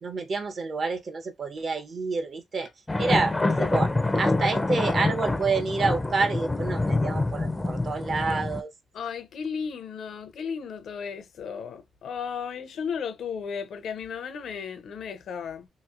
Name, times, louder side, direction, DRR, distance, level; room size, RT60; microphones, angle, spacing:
voice 1, 0.0-2.7 3.0-8.7, right 4 dB, 50° right, 0.8 m, -28 dB
sound 1, 2.9-8.6, left 2 dB, 15° left, 0.4 m, -26 dB
voice 2, 8.9-15.7, left 6 dB, 70° left, 0.5 m, -34 dB
3.0 x 2.8 x 2.4 m
cardioid pair, 90°, 0 cm